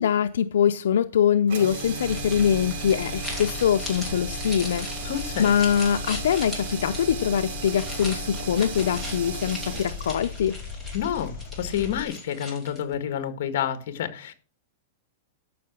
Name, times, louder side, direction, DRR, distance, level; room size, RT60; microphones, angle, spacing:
voice 1, 0.0-4.9 5.4-10.6, left 8 dB, 90° left, 0.6 m, -23 dB
sound 1, 1.5-11.6, right 6 dB, 60° right, 4.6 m, -36 dB
sound 2, 1.8-13.0, left 1 dB, 5° right, 2.7 m, -40 dB
Engine, 2.0-12.0, left 6 dB, 25° left, 5.3 m, -38 dB
voice 2, 5.0-5.5 10.9-14.3, left 9 dB, 55° left, 1.7 m, -29 dB
13.5 x 5.9 x 6.1 m
supercardioid pair, 170°, 0 cm